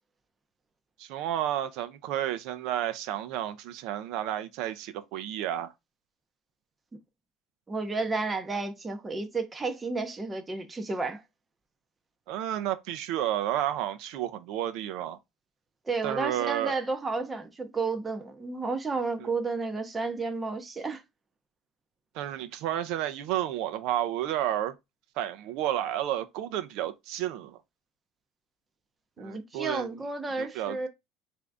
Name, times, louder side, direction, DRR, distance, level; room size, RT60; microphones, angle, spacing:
voice 1, 1.0-5.7 12.3-15.2 16.0-16.7 19.2-19.3 22.1-24.7 25.2-27.6 29.2-30.0 30.4-30.9, right 12 dB, 65° right, 0.5 m, -31 dB
voice 2, 7.7-11.2 15.9-21.0 29.2-30.9, right 3 dB, 15° right, 0.6 m, -32 dB
3.6 x 2.6 x 3.3 m
cardioid pair, 155°, 0 cm